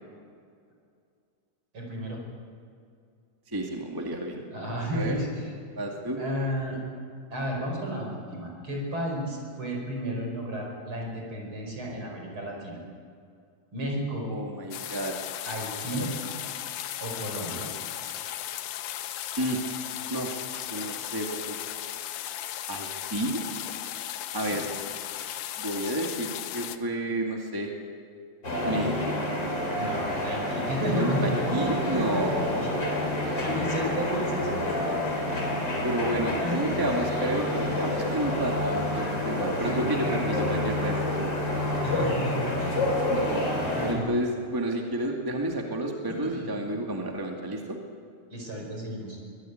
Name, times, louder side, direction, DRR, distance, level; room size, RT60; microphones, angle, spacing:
voice 1, 1.7-2.2 4.5-5.5 6.2-6.8 7.3-12.8 13.7-14.3 15.5-16.1 17.0-17.7 24.4-24.6 29.8-32.8 33.4-35.4 36.3-36.8 37.5-37.7 39.6-40.8 41.8-42.9 43.6-44.0 46.1-46.5 48.3-49.2, equal, 35° right, 0 dB, 5.8 m, -32 dB
voice 2, 3.5-4.4 4.9-5.1 5.7-6.2 14.3-15.1 15.9-16.3 19.4-19.6 20.1-20.4 20.7-21.6 22.7-23.4 24.3-24.6 25.6-27.7 28.6-29.1 30.8-32.6 35.8-37.5 37.8-41.2 43.1-43.4 43.8-47.8, right 1 dB, 10° right, 1 dB, 1.0 m, -31 dB
sound 1, 14.7-26.8, left 12 dB, 70° left, 1.8 m, -36 dB
sound 2, 28.4-43.9, left 1 dB, 30° left, 4.7 m, -28 dB
23.5 x 18.5 x 9.3 m, 2.3 s
omnidirectional pair, 4.1 m